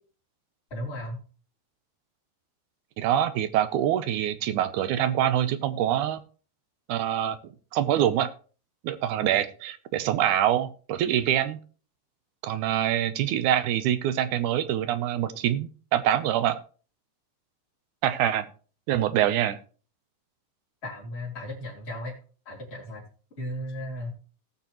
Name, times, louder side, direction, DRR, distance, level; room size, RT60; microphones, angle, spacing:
voice 1, 0.7-1.2 9.2-9.3 20.8-22.1 22.5-23.0 23.4-24.1, left 1 dB, 20° left, -6 dB, 3.5 m, -35 dB
voice 2, 3.0-6.2 6.9-8.3 8.8-11.6 12.4-16.6 18.0-18.5 18.9-19.6, right 11 dB, 90° right, 12 dB, 2.3 m, -25 dB
19.0 x 6.8 x 3.0 m, 0.38 s
omnidirectional pair, 3.4 m